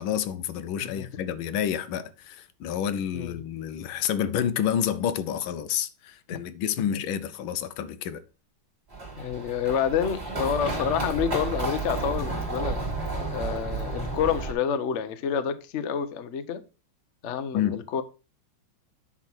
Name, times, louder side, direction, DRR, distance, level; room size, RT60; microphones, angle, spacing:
voice 1, 0.0-8.2 17.5-17.8, left 9 dB, 80° left, 1.5 m, -29 dB
Run, 8.9-14.5, right 3 dB, 30° right, 3.1 m, -31 dB
voice 2, 9.2-12.8 13.3-16.6 17.2-18.0, left 8 dB, 60° left, 0.7 m, -28 dB
9.8 x 3.7 x 6.1 m
omnidirectional pair, 2.3 m